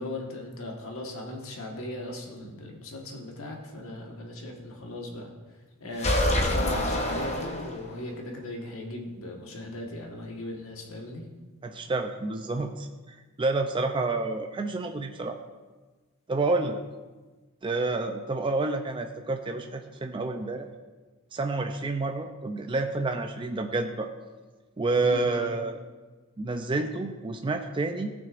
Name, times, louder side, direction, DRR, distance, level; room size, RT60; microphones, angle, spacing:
voice 1, 0.0-5.3 5.8-11.3 25.0-25.5, left 1 dB, 65° left, 0 dB, 1.4 m, -38 dB
sound 1, 6.0-8.0, left 1 dB, 30° left, 1.0 m, -26 dB
voice 2, 11.6-12.9 13.4-15.4 16.3-16.8 17.6-20.7 21.3-24.1 24.8-25.8 26.4-28.1, right 3 dB, 20° right, 5 dB, 0.4 m, -29 dB
18.0 x 6.1 x 2.5 m, 1.3 s
head